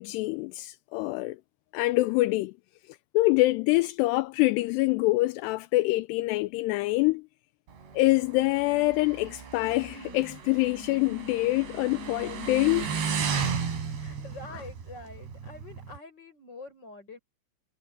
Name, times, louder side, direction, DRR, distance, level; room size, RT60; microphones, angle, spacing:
voice 1, 0.0-1.4 1.7-2.5 2.9-7.2 7.9-12.9, left 20 dB, 85° left, 2.7 m, -25 dB
Motorcycle, 7.7-16.0, right 6 dB, 80° right, 6.3 m, -35 dB
voice 2, 14.0-17.2, left 3 dB, 25° left, 8.3 m, -45 dB
omnidirectional pair, 4.9 m